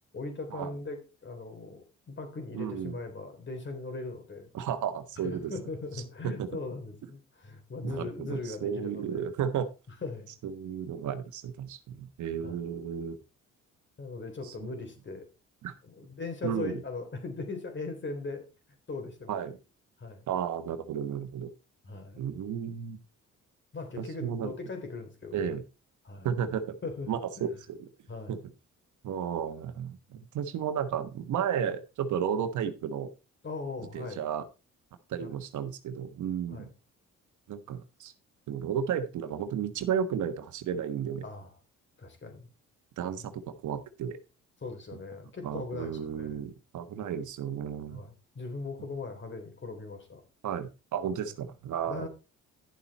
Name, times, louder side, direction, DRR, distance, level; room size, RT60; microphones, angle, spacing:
voice 1, 0.1-4.5 5.2-9.3 10.0-10.3 12.4-12.6 14.0-15.3 15.8-18.4 18.9-19.4 20.0-20.3 21.8-22.2 23.7-25.5 26.0-26.3 26.8-27.1 28.1-28.4 33.4-34.2 35.2-35.4 36.5-36.7 41.2-41.5 42.0-42.5 43.2-43.3 44.6-46.4 47.9-50.2 51.0-51.3 51.9-52.1, left 3 dB, 40° left, 5 dB, 3.6 m, -39 dB
voice 2, 2.5-3.0 4.5-5.5 6.2-6.5 7.8-9.7 10.4-13.2 14.6-14.7 15.6-15.7 16.4-16.8 19.3-19.6 20.3-21.5 22.2-23.0 24.0-24.5 25.3-25.6 26.2-26.7 27.1-27.9 28.3-28.4 29.0-33.1 33.9-34.4 35.1-36.7 37.5-38.1 38.5-41.2 43.0-44.2 45.4-48.0 50.4-52.1, right 8 dB, 70° right, 10 dB, 1.3 m, -33 dB
11.0 x 7.2 x 4.2 m, 0.30 s
cardioid pair, 80°, 30 cm